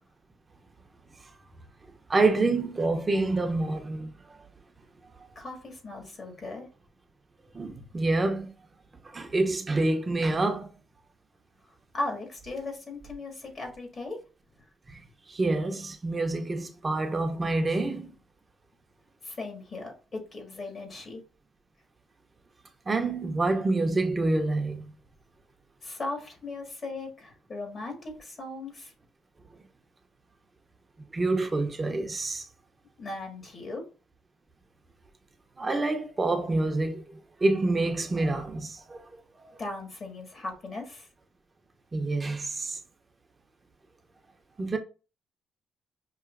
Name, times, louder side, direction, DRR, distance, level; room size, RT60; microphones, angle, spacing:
voice 1, 2.1-4.4 7.5-8.5 9.0-10.7 14.9-15.0 15.3-18.1 22.9-24.9 31.1-32.4 35.6-39.1 39.4-39.6 41.9-42.8 44.6-44.8, right 2 dB, 30° right, 0.9 m, -27 dB
voice 2, 5.4-6.7 11.9-14.2 19.2-21.2 25.8-28.9 33.0-33.9 39.6-41.1, left 2 dB, 40° left, 1.9 m, -37 dB
5.7 x 2.7 x 2.6 m
cardioid pair, 90°, 0 cm